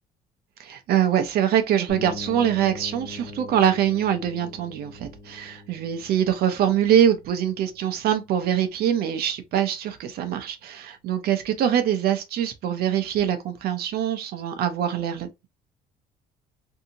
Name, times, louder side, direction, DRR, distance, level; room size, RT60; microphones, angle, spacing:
voice 1, 0.6-15.5, right 10 dB, 70° right, 0.6 m, -24 dB
sound 1, 1.9-9.6, left 3 dB, 35° left, 1.0 m, -43 dB
2.7 x 2.7 x 2.6 m
cardioid pair, 110°, 17 cm